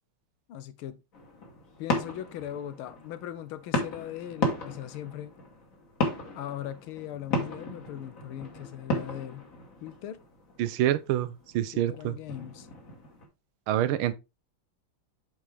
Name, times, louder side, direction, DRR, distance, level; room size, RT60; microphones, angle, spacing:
voice 1, 0.5-1.0 1.8-5.4 6.3-9.5 9.8-10.2 11.7-12.7, left 11 dB, 85° left, 1.6 m, -39 dB
sound 1, 1.1-13.3, left 2 dB, 40° left, 2.0 m, -35 dB
voice 2, 10.6-12.1 13.7-14.1, right 12 dB, 85° right, 1.5 m, -27 dB
8.7 x 4.4 x 3.4 m
omnidirectional pair, 2.3 m